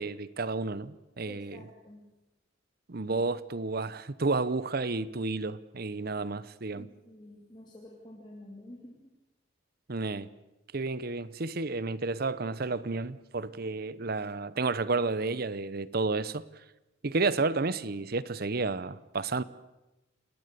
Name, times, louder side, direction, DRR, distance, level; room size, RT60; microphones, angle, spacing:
voice 1, 0.0-1.7 2.9-6.9 9.9-10.3 10.7-16.4 17.0-19.4, right 3 dB, 50° right, 0.8 m, -31 dB
voice 2, 1.3-2.0 6.7-9.0, left 1 dB, 25° left, 2.6 m, -49 dB
29.0 x 19.0 x 6.8 m
head